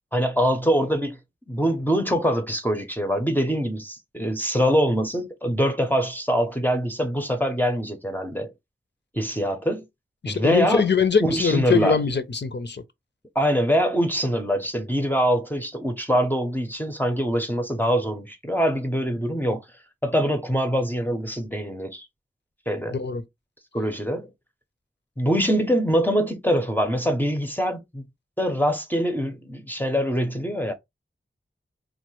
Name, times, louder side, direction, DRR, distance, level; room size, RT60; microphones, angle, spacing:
voice 1, 0.1-1.2 1.5-8.5 9.1-9.9 10.2-10.8 11.2-12.0 13.3-19.7 20.0-22.1 22.7-23.0 23.7-24.3 25.2-28.0 28.4-30.7, equal, 10° left, 0.6 m, -24 dB
voice 2, 10.2-12.8 22.9-23.2, left 6 dB, 55° left, 0.5 m, -22 dB
3.1 x 2.0 x 3.0 m
wide cardioid pair, 50°, 21 cm